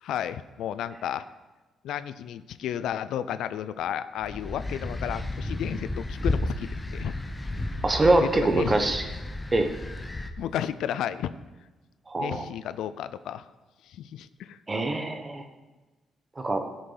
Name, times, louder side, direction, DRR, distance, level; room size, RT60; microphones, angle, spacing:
voice 1, 0.0-1.2 1.8-7.1 8.2-8.8 10.4-11.3 12.2-13.4 13.9-14.6, left 10 dB, 85° left, 14 dB, 0.4 m, -32 dB
sound 1, 4.2-10.3, left 2 dB, 15° left, 0.8 m, -33 dB
voice 2, 7.8-9.0 9.5-9.7 12.1-12.4 14.7-15.4 16.4-16.6, right 2 dB, 20° right, 6 dB, 1.1 m, -24 dB
18.5 x 6.5 x 4.0 m, 1.2 s
cardioid pair, 135°, 0 cm